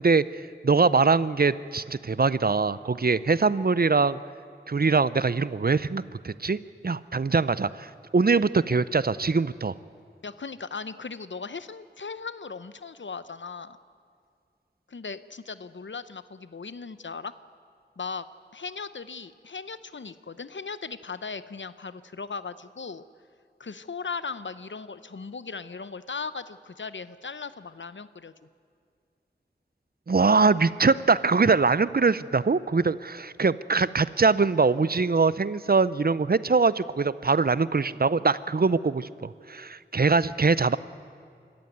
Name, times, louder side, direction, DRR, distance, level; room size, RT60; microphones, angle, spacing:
voice 1, 0.0-4.2 4.7-6.6 6.8-9.7 30.1-40.8, right 4 dB, 55° right, 17 dB, 0.6 m, -23 dB
voice 2, 10.2-13.8 14.9-17.3 18.0-18.2 18.5-23.0 23.6-28.3, left 5 dB, 80° left, 14 dB, 0.7 m, -38 dB
25.0 x 14.0 x 9.2 m, 2.2 s
wide cardioid pair, 45°, 19 cm